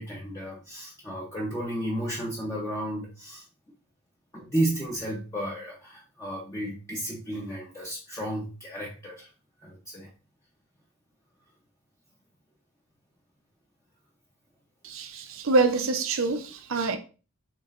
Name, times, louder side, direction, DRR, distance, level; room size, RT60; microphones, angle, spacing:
voice 1, 0.0-3.5 4.3-9.3 9.6-10.1, right 1 dB, 15° left, 0.7 m, -33 dB
voice 2, 14.8-17.0, right 3 dB, 65° right, 0.7 m, -25 dB
7.1 x 3.0 x 2.5 m
head